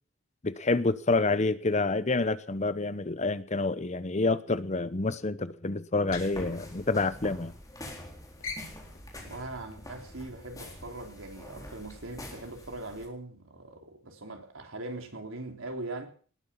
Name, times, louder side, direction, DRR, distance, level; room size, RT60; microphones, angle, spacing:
voice 1, 0.4-7.5, left 3 dB, 35° left, 0.9 m, -28 dB
sound 1, 5.9-7.5 7.8-8.1 8.4-10.9, left 4 dB, 80° left, 3.8 m, -45 dB
sound 2, 6.1-13.1, left 1 dB, 15° left, 4.0 m, -46 dB
voice 2, 9.2-16.1, right 2 dB, 80° right, 3.6 m, -41 dB
19.5 x 9.9 x 7.1 m
head